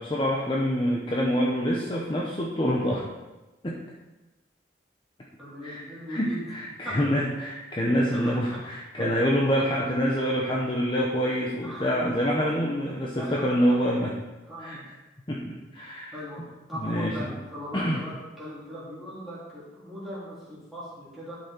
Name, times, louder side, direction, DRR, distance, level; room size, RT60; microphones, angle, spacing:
voice 1, 0.0-3.0 3.6-3.8 5.6-5.8 6.1-14.1 14.6-14.8 15.3-16.5 16.7-17.2 17.7-18.0, equal, 25° left, -3 dB, 0.9 m, -26 dB
voice 2, 5.4-6.5 6.8-7.1 8.1-8.6 11.6-11.9 13.1-13.8 14.5-14.9 16.1-16.4 16.7-18.1 18.4-21.4, equal, ahead, -10 dB, 3.7 m, -39 dB
11.5 x 5.9 x 4.5 m, 1.1 s
head